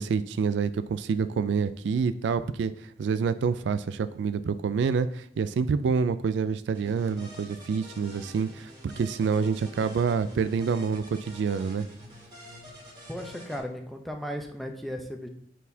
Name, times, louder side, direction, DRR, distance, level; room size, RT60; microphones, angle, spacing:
voice 1, 0.0-2.7 3.0-11.9, right 5 dB, 75° right, 13 dB, 0.3 m, -27 dB
sound 1, 6.7-13.6, equal, 25° right, 1.8 m, -47 dB
voice 2, 13.1-15.3, equal, ahead, 3 dB, 0.6 m, -36 dB
9.1 x 4.2 x 2.7 m, 0.66 s
head